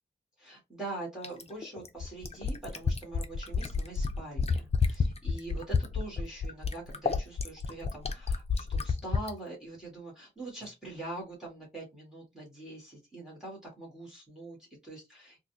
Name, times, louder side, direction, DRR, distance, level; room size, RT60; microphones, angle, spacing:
voice 1, 0.4-15.4, right 2 dB, 5° right, -3 dB, 1.8 m, -43 dB
Fill (with liquid), 1.2-9.3 10.7-10.8, left 5 dB, 35° left, 0.5 m, -30 dB
3.8 x 2.4 x 2.7 m, 0.21 s
wide cardioid pair, 135°, 19 cm